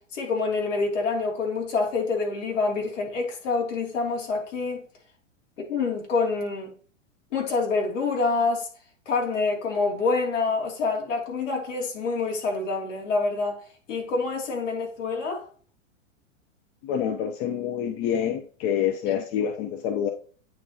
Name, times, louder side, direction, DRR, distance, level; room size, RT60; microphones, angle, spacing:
voice 1, 0.1-4.8 5.7-6.7 7.3-8.7 9.1-13.6 13.9-15.5 19.1-19.2, left 4 dB, 70° left, 2.9 m, -26 dB
voice 2, 16.8-20.1, left 9 dB, 40° left, 0.9 m, -27 dB
8.9 x 4.6 x 2.9 m
hypercardioid pair, 115°, 38 cm